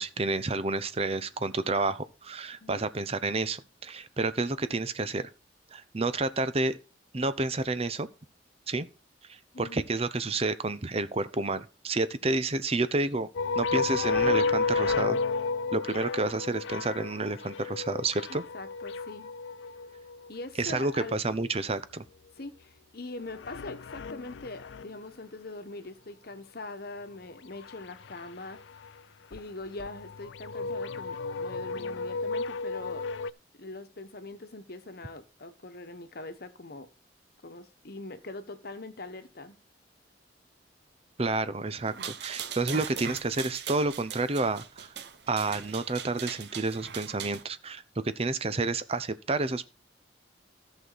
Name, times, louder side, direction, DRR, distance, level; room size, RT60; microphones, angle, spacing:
voice 1, 0.0-5.3 5.7-6.8 7.1-8.1 8.7-8.9 9.3-13.3 13.5-15.2 15.7-18.4 20.6-22.0 41.2-44.9 45.3-49.7, right 3 dB, 30° right, 0.7 m, -30 dB
voice 2, 9.5-9.9 18.3-19.3 20.3-21.2 22.4-28.6 29.3-33.1 33.6-36.9 37.4-39.6 41.7-42.0, left 2 dB, 55° left, 1.2 m, -42 dB
sound 1, 13.3-20.3 23.3-24.9 27.6-28.3 28.6-28.9 29.3-29.4 29.8-33.3, left 4 dB, 75° left, 0.4 m, -32 dB
sound 2, 41.9-47.4, right 8 dB, 60° right, 0.9 m, -40 dB
14.0 x 6.4 x 4.0 m
head